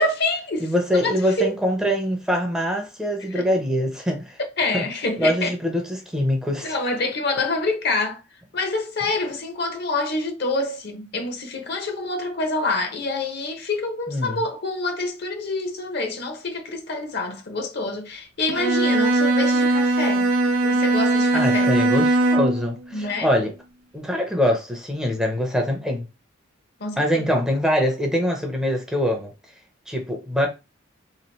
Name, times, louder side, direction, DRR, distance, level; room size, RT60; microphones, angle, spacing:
voice 1, 0.0-1.5 3.3-3.4 4.4-5.5 6.6-8.2 8.5-20.3 20.6-21.8 22.9-23.3 26.8-27.3, left 2 dB, 55° left, 0.9 m, -27 dB
voice 2, 0.6-4.4 4.7-4.9 5.2-6.7 14.1-14.4 21.3-23.5 23.9-26.1 27.0-29.3 29.9-30.5, equal, 5° right, 0.6 m, -23 dB
Bowed string instrument, 18.5-22.7, right 2 dB, 85° right, 0.5 m, -20 dB
3.1 x 2.5 x 4.0 m
head